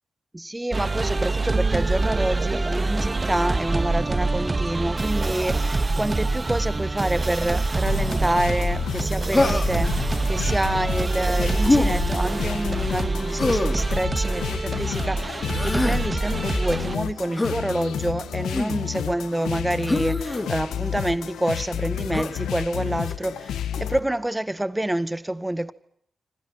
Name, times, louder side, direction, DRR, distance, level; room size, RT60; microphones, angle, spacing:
voice 1, 0.3-25.7, right 1 dB, 15° right, 1.7 m, -27 dB
sound 1, 0.7-16.9, right 3 dB, 35° right, 2.0 m, -25 dB
sound 2, 7.9-24.0, left 10 dB, 85° left, 1.7 m, -31 dB
Human voice, 9.3-9.9 11.6-11.9 13.4-13.8 15.4-16.0 17.4-17.6 18.5-18.8 19.9-20.5 22.1-22.4, left 2 dB, 25° left, 3.8 m, -23 dB
28.0 x 26.0 x 5.9 m
supercardioid pair, 40°, 0 cm